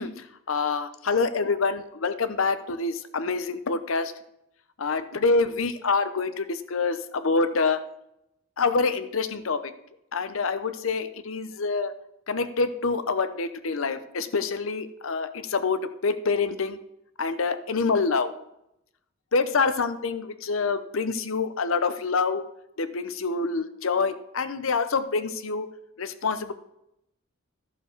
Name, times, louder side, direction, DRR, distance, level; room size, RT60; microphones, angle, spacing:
voice 1, 0.0-4.1 4.8-7.9 8.6-9.7 10.1-11.9 12.3-16.8 17.2-18.3 19.3-22.4 22.8-25.7 26.0-26.5, left 4 dB, 75° left, 12 dB, 0.7 m, -26 dB
11.5 x 6.9 x 4.5 m, 0.81 s
head